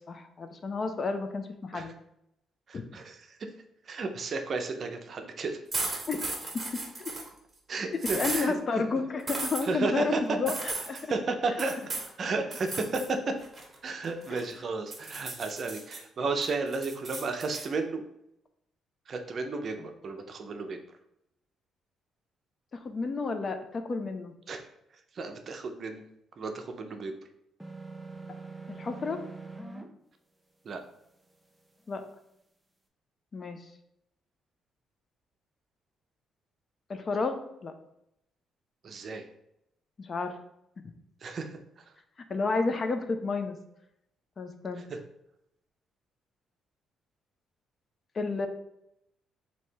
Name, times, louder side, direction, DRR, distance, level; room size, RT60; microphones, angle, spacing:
voice 1, 0.1-1.9 2.7-2.8 6.1-6.2 7.0-7.1 7.9-11.1 14.3-14.4 19.8-19.9 22.7-24.3 28.7-29.2 31.9-32.0 33.3-33.6 36.9-37.7 40.0-40.4 42.3-43.6 44.4-44.8 48.1-48.5, left 4 dB, 40° left, 7 dB, 0.5 m, -31 dB
voice 2, 2.7-3.2 3.9-5.6 7.7-8.6 9.6-10.2 11.1-11.8 12.2-13.2 13.8-18.0 19.1-20.8 24.5-24.6 25.1-26.0 26.4-27.1 30.6-30.8 38.8-39.2 41.2-41.6 44.9-45.0, right 3 dB, 50° right, 6 dB, 0.5 m, -33 dB
sound 1, 5.7-7.3 8.0-8.5 9.3-9.6 10.5-11.0 11.6-12.1 12.5-13.1 13.4-14.5 14.9-16.0 16.4-17.7, right 3 dB, 30° right, 1.1 m, -35 dB
sound 2, 27.6-29.9, right 3 dB, 5° right, 0.6 m, -43 dB
3.2 x 2.8 x 4.4 m, 0.81 s
cardioid pair, 90°, 0 cm